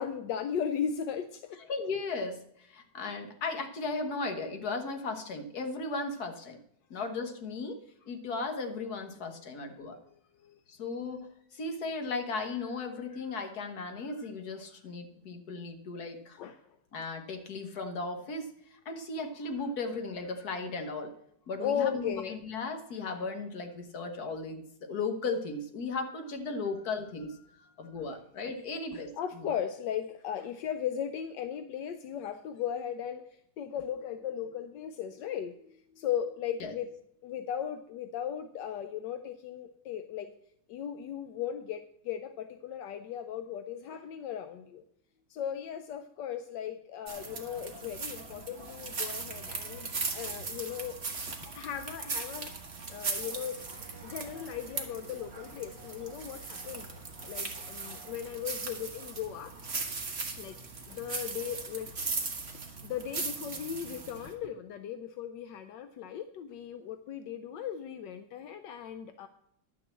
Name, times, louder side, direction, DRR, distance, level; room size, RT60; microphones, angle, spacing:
voice 1, 0.0-1.6 9.7-10.6 16.4-16.6 21.6-22.3 26.6-26.7 27.4-28.0 28.9-36.9 37.2-40.3 40.7-44.8 45.3-51.0 51.3-52.5 52.9-53.6 54.0-56.9 57.3-59.5 60.4-60.6 60.9-61.9 62.8-69.3, left 9 dB, 80° left, 9 dB, 1.3 m, -37 dB
voice 2, 1.7-6.6 6.9-7.8 8.1-10.0 10.7-16.4 16.9-21.1 21.5-27.4 27.8-29.1 29.4-29.5 36.6-36.7, left 3 dB, 60° left, 5 dB, 1.8 m, -36 dB
sound 1, 47.1-64.3, right 4 dB, 40° right, 1.6 m, -39 dB
Domestic sounds home sounds, 53.1-59.7, right 3 dB, 15° right, 2.1 m, -56 dB
11.0 x 6.1 x 7.5 m, 0.72 s
omnidirectional pair, 1.9 m